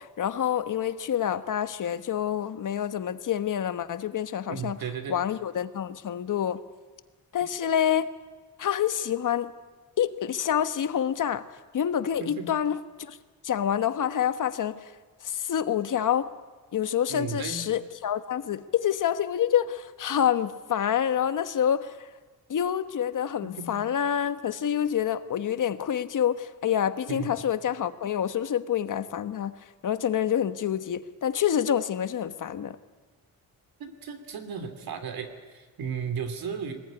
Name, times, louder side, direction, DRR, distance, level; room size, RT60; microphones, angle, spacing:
voice 1, 0.0-4.8 5.1-6.6 7.3-8.1 8.6-9.5 10.0-11.5 11.7-12.8 13.1-13.2 13.4-14.8 15.2-16.3 16.7-22.1 22.5-29.5 29.8-32.8, left 9 dB, 60° left, 11 dB, 1.2 m, -27 dB
voice 2, 4.5-5.2 12.2-12.5 17.1-17.7 23.4-23.9 27.1-27.3 33.8-36.7, right 6 dB, 85° right, 8 dB, 3.0 m, -35 dB
24.5 x 20.0 x 9.8 m, 1.3 s
wide cardioid pair, 155°, 35 cm